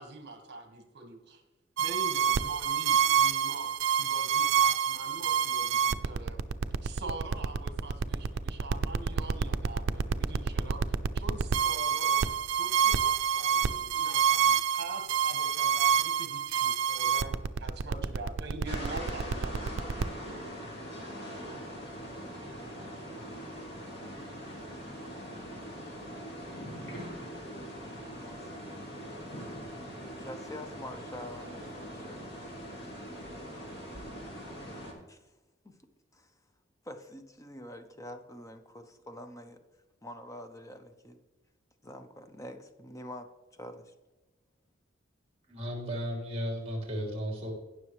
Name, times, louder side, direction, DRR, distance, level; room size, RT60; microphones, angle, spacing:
voice 1, 0.0-1.4 1.8-6.4 6.8-10.9 11.1-12.3 12.6-20.0, right 3 dB, 55° right, 5 dB, 1.6 m, -43 dB
sound 1, 1.8-20.0, right 7 dB, 75° right, 0.5 m, -27 dB
sound 2, 18.7-34.9, equal, 60° left, 2.2 m, -42 dB
voice 2, 27.6-28.6 30.2-32.3 35.1-35.3 35.6-35.8 36.1-36.3 36.8-39.6 40.0-41.2 41.8-43.3 43.6-43.9, left 1 dB, 15° left, 7 dB, 0.8 m, -46 dB
voice 3, 45.5-47.5, equal, 30° right, 0 dB, 2.9 m, -34 dB
17.0 x 6.1 x 3.2 m, 1.1 s
head